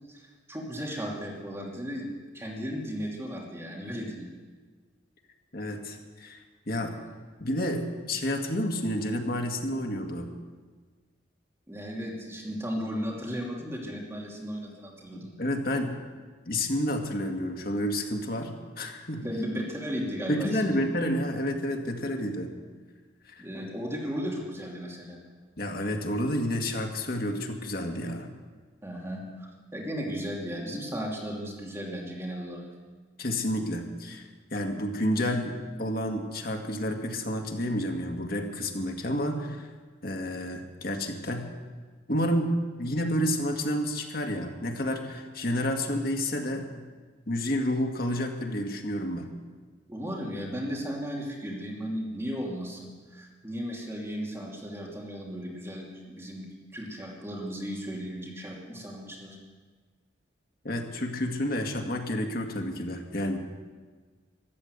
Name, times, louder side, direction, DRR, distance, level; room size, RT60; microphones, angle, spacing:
voice 1, 0.1-4.3 11.7-15.3 19.2-20.7 23.4-25.2 28.8-32.7 49.9-56.5 56.7-59.4, equal, 15° right, -2 dB, 2.8 m, -35 dB
voice 2, 5.5-6.4 6.7-6.9 7.4-10.3 15.1-16.0 16.5-19.2 20.3-22.5 23.3-23.4 25.6-28.3 33.2-39.7 40.0-41.5 42.1-46.8 47.3-49.3 60.6-63.4, left 1 dB, 55° left, 3 dB, 2.0 m, -30 dB
14.0 x 12.0 x 8.2 m, 1.4 s
head